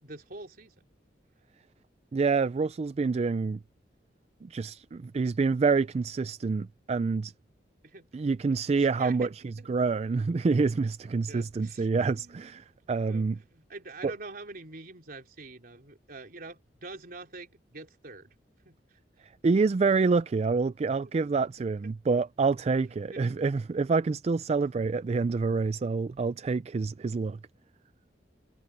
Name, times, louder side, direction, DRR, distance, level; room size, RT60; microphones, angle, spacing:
voice 1, 0.0-0.9 7.8-8.2 8.7-9.7 11.3-12.6 13.1-18.4 18.6-18.8 21.2-21.3 21.8-21.9 23.1-23.4, right 3 dB, 55° right, 3.7 m, -46 dB
voice 2, 2.1-3.6 4.4-7.3 8.1-13.4 14.0-14.1 19.4-27.4, right 4 dB, 35° right, 0.3 m, -27 dB
head